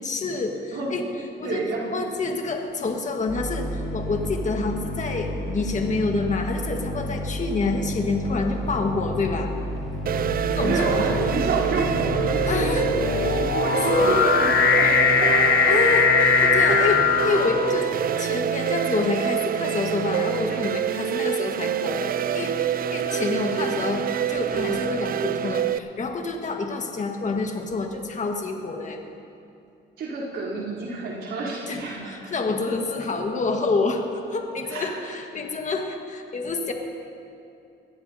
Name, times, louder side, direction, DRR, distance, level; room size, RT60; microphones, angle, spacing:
voice 1, 0.0-1.1 1.4-1.6 1.9-9.5 10.6-11.3 12.5-12.9 13.4-13.6 13.9-14.3 15.7-16.1 16.4-17.9 18.2-29.0 31.7-34.0 34.3-36.7, left 3 dB, 40° left, 3 dB, 1.5 m, -27 dB
voice 2, 1.4-1.9 10.5-15.5 30.0-32.3 34.6-35.2, right 3 dB, 70° right, -7 dB, 3.6 m, -29 dB
sound 1, 3.3-13.5, equal, ahead, 3.0 m, -31 dB
sound 2, 8.6-9.0 9.9-18.1, left 6 dB, 60° left, 1.1 m, -22 dB
sound 3, 10.1-25.8, right 9 dB, 45° right, 0.4 m, -26 dB
22.0 x 15.0 x 2.8 m, 2.6 s
cardioid pair, 90°, 20 cm